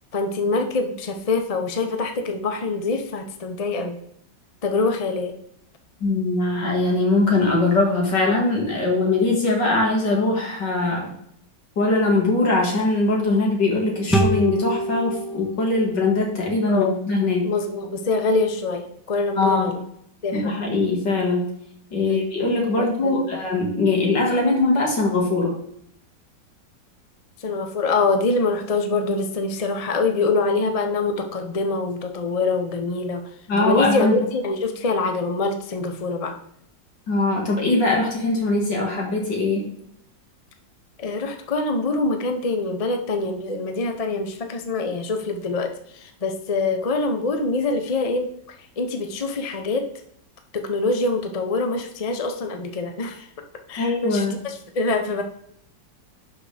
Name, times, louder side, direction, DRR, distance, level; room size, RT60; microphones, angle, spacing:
voice 1, 0.1-4.0 4.6-5.3 16.7-17.0 17.4-19.8 20.2-20.6 22.0-22.2 22.8-23.3 27.4-33.2 33.5-36.3 41.0-48.3 48.8-49.8 50.5-53.3 53.7-55.2, left 3 dB, 40° left, 5 dB, 0.5 m, -24 dB
voice 2, 6.0-11.1 11.8-17.5 19.4-19.7 20.3-21.5 21.9-25.5 33.5-34.2 37.1-39.7 53.8-54.4, left 2 dB, 70° left, 0 dB, 2.7 m, -21 dB
sound 1, 14.1-17.5, right 1 dB, ahead, 0.9 m, -27 dB
11.5 x 5.2 x 3.4 m, 0.70 s
omnidirectional pair, 2.0 m